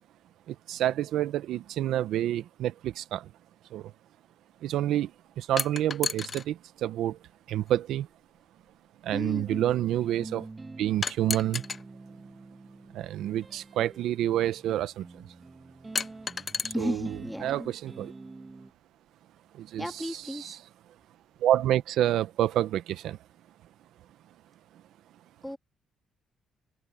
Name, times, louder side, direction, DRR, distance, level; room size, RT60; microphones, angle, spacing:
voice 1, 0.5-3.3 3.7-3.9 4.6-5.1 5.4-7.2 7.5-8.1 9.0-10.5 10.8-11.6 12.9-15.3 16.7-17.0 17.4-18.1 19.5-20.6 21.4-23.2, right 12 dB, 80° right, 0.7 m, -28 dB
sound 1, 5.6-6.5 7.7-7.8 11.0-11.8 13.3-13.4 16.0-16.7, left 5 dB, 40° left, 0.7 m, -31 dB
voice 2, 9.1-9.6 16.7-17.7 19.8-20.6 25.4-25.6, equal, 5° left, 1.9 m, -34 dB
sound 2, 9.5-18.7, right 3 dB, 25° right, 1.2 m, -46 dB
open air
cardioid pair, 90°, 0 cm